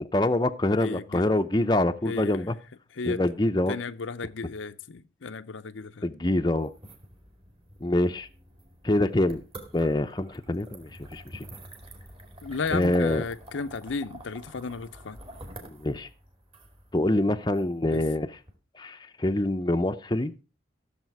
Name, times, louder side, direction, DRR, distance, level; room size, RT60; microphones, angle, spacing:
voice 1, 0.1-2.6 3.0-3.8 6.0-6.7 7.8-8.3 8.8-9.4 9.7-11.4 12.7-13.2 15.7-16.1 16.9-18.3 18.8-20.3, left 1 dB, 20° left, 0.6 m, -25 dB
voice 2, 0.8-1.3 2.0-2.5 2.9-3.2 3.7-6.1 12.4-15.2 17.9-18.0, left 4 dB, 85° left, 0.7 m, -34 dB
sound 1, 6.6-18.5, right 1 dB, 30° right, 2.6 m, -47 dB
15.0 x 7.4 x 4.7 m
head